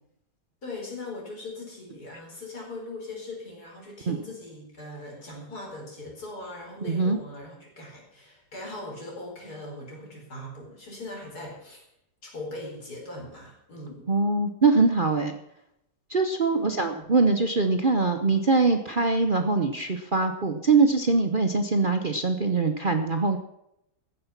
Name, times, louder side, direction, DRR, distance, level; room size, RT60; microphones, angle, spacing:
voice 1, 0.6-11.8 12.2-14.1 16.5-17.1, left 2 dB, 65° left, -1 dB, 5.2 m, -40 dB
voice 2, 6.8-7.2 14.1-15.4 16.1-23.4, right 3 dB, 40° right, 6 dB, 0.9 m, -23 dB
15.0 x 9.7 x 5.9 m, 0.81 s
omnidirectional pair, 1.8 m